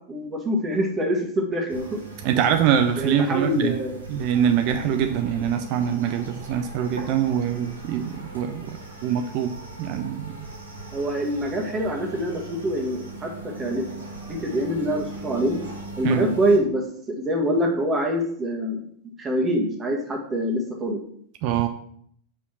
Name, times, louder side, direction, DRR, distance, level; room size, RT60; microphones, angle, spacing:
voice 1, 0.1-2.0 2.3-2.6 3.0-4.0 10.9-13.9 14.3-15.6 16.0-18.8 19.2-21.0, equal, 20° right, 1 dB, 1.5 m, -25 dB
sound 1, 1.7-16.6, right 2 dB, 80° right, 2.6 m, -39 dB
voice 2, 2.2-3.8 4.1-9.5 9.8-10.5 16.0-16.2 21.4-21.7, right 9 dB, 45° right, 7 dB, 0.5 m, -24 dB
5.1 x 4.9 x 5.6 m, 0.64 s
figure-of-eight pair, 90°, 0 cm